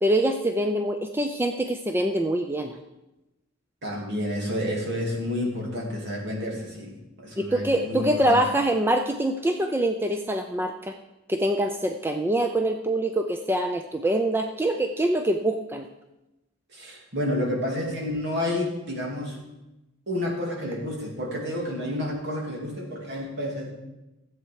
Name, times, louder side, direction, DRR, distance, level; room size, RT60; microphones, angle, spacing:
voice 1, 0.0-2.8 7.4-10.9 11.3-15.9, right 1 dB, 10° right, 5 dB, 0.5 m, -24 dB
voice 2, 3.8-8.4 16.7-19.4 20.1-23.7, left 1 dB, 55° right, -2 dB, 3.1 m, -30 dB
14.5 x 8.1 x 4.8 m, 0.99 s
head